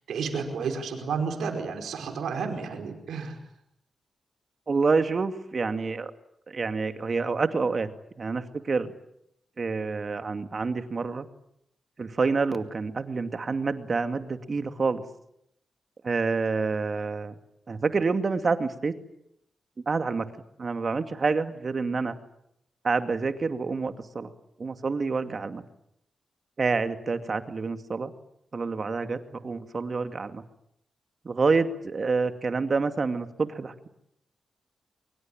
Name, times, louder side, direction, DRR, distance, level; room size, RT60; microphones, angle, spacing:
voice 1, 0.1-3.4, right 5 dB, 80° right, 5 dB, 5.1 m, -31 dB
voice 2, 4.7-6.1 6.5-7.9 8.2-8.9 9.6-11.3 12.0-15.0 16.0-17.3 17.7-18.9 19.9-20.3 20.6-22.2 22.8-24.3 24.6-25.6 26.6-28.1 28.5-30.4 31.2-33.9, right 4 dB, 50° right, 9 dB, 2.4 m, -27 dB
24.0 x 23.5 x 8.9 m, 0.77 s
supercardioid pair, 45°, 0 cm